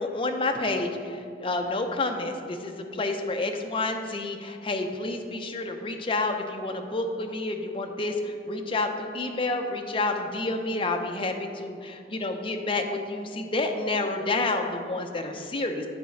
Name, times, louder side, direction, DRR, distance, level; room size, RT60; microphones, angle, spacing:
voice 1, 0.0-15.8, left 2 dB, 30° left, 4 dB, 0.6 m, -29 dB
8.7 x 4.1 x 5.9 m, 2.3 s
head